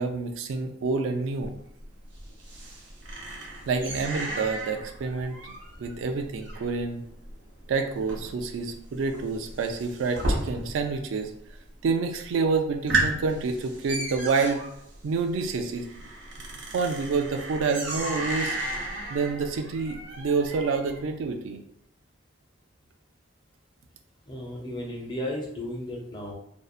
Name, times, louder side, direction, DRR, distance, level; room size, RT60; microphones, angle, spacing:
voice 1, 0.0-1.5 3.7-5.5 5.8-7.0 7.7-11.3 11.8-14.6 15.0-15.9 16.7-18.6 19.1-21.6, right 4 dB, 90° right, 5 dB, 0.3 m, -28 dB
sound 1, 1.4-11.0 11.2-11.8 12.2-12.3 12.7-21.0, right 2 dB, 65° right, 0.7 m, -34 dB
voice 2, 24.3-26.3, left 1 dB, 25° left, -1 dB, 0.5 m, -34 dB
2.6 x 2.0 x 2.4 m, 0.73 s
head